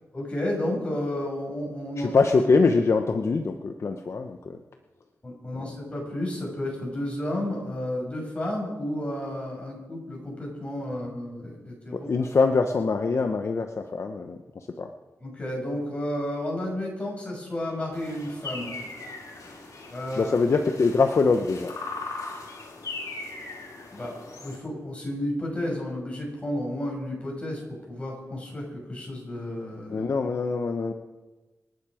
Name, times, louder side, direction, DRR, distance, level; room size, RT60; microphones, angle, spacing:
voice 1, 0.1-2.1 5.2-12.1 15.2-18.7 19.9-20.4 23.9-27.6 27.9-30.0, left 1 dB, 20° left, -2 dB, 6.5 m, -32 dB
voice 2, 2.0-4.6 5.6-5.7 11.9-14.9 20.2-21.7 29.9-30.9, left 4 dB, 55° left, 6 dB, 0.9 m, -24 dB
sound 1, 17.9-24.6, left 3 dB, 80° left, 3.5 m, -39 dB
26.5 x 10.5 x 5.0 m, 1.2 s
wide cardioid pair, 125°, 6 cm